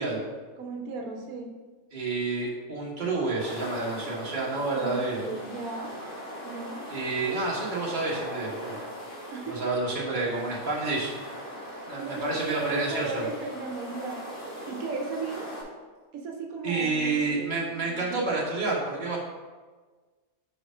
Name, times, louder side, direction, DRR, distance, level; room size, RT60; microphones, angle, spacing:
voice 1, 0.0-1.5 4.7-6.0 6.4-6.9 9.3-9.7 11.6-14.2 14.6-15.5 16.1-18.2, right 4 dB, 85° right, 2 dB, 1.2 m, -36 dB
voice 2, 1.9-5.3 6.9-8.7 9.5-11.1 11.9-13.3 16.6-19.2, right 3 dB, 35° right, -5 dB, 1.5 m, -29 dB
sound 1, 3.4-15.6, equal, 60° left, 2.5 m, -40 dB
5.2 x 5.0 x 5.0 m, 1.4 s
omnidirectional pair, 1.5 m